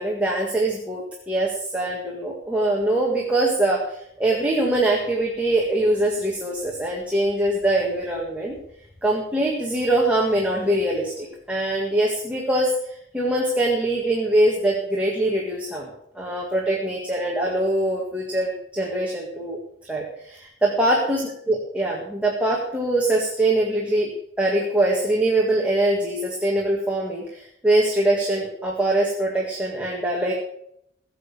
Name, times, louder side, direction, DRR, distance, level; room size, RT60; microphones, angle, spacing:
voice 1, 0.0-8.6 9.0-15.9 16.2-21.2 21.5-24.1 24.4-30.3, right 1 dB, 5° right, -3 dB, 1.9 m, -23 dB
16.5 x 7.2 x 6.8 m, 0.74 s
head